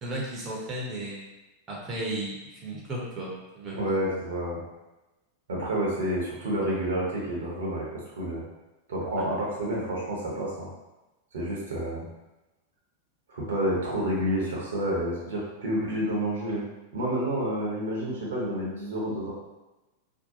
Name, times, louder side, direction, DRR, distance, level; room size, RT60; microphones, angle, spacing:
voice 1, 0.0-1.2 1.7-3.9 9.1-9.3, right 1 dB, 25° right, -4 dB, 0.7 m, -34 dB
voice 2, 3.7-4.6 5.5-7.9 8.2-8.4 8.9-10.7 11.3-12.0 13.3-16.6 16.9-19.3, right 1 dB, 65° right, -4 dB, 0.7 m, -29 dB
2.6 x 2.2 x 2.7 m, 1.0 s
figure-of-eight pair, 90°, 0 cm